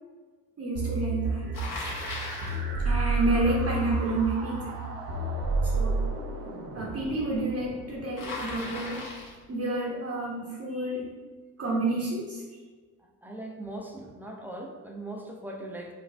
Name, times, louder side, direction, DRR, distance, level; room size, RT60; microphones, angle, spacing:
voice 1, 0.6-1.5 2.8-4.8 5.6-6.1 6.7-9.1 9.5-11.1 11.6-12.4, right 2 dB, 35° right, -4 dB, 0.9 m, -29 dB
sound 1, 0.8-6.1, right 3 dB, 80° right, 0.8 m, -29 dB
sound 2, 1.3-9.2, right 2 dB, 55° right, 1.0 m, -42 dB
Bicycle, 1.5-2.6 8.2-9.4, left 2 dB, 45° left, 1.2 m, -37 dB
voice 2, 13.2-15.9, right 1 dB, 5° right, 0 dB, 0.5 m, -39 dB
4.8 x 2.4 x 2.3 m, 1.4 s
hypercardioid pair, 55°, 46 cm